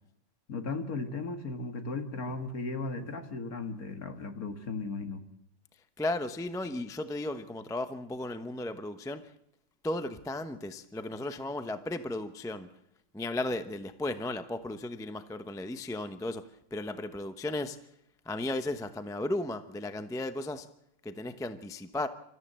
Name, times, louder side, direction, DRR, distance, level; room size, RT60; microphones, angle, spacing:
voice 1, 0.5-5.2, left 3 dB, 55° left, 7 dB, 2.2 m, -36 dB
voice 2, 6.0-9.2 9.8-12.7 13.1-16.4 16.7-17.8 18.3-20.7 21.0-22.1, left 2 dB, 5° left, 10 dB, 0.5 m, -35 dB
27.5 x 14.0 x 7.6 m, 0.78 s
omnidirectional pair, 1.9 m